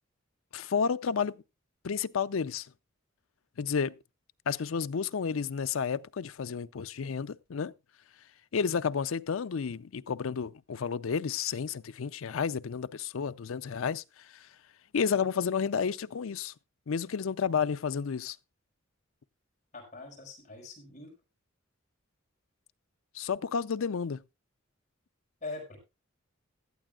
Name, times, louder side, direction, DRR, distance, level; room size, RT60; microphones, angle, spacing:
voice 1, 0.5-1.4 1.8-2.7 3.6-4.0 4.5-7.7 8.5-14.5 14.9-16.5 16.9-18.4 23.1-24.2, left 6 dB, 90° left, 0.5 m, -31 dB
voice 2, 19.7-21.1 25.4-25.8, left 3 dB, 35° left, 5.2 m, -42 dB
16.5 x 12.0 x 2.4 m
head